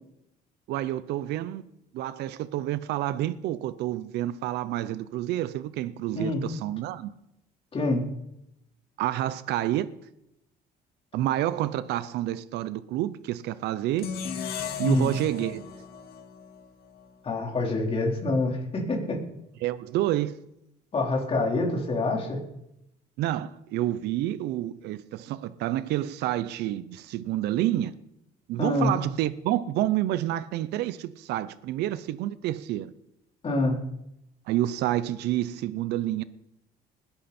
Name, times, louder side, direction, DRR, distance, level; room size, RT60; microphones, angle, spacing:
voice 1, 0.7-1.6 1.9-7.1 9.0-9.9 11.1-14.1 14.8-15.6 19.6-20.4 23.2-27.9 28.5-32.9 34.5-36.2, right 13 dB, 80° right, 0.7 m, -29 dB
sound 1, 14.0-17.2, left 7 dB, 70° left, 2.2 m, -36 dB
voice 2, 17.2-19.2 20.9-22.4 28.6-28.9 33.4-33.8, left 2 dB, 35° left, 4.1 m, -26 dB
20.5 x 11.5 x 4.3 m
cardioid pair, 110°, 17 cm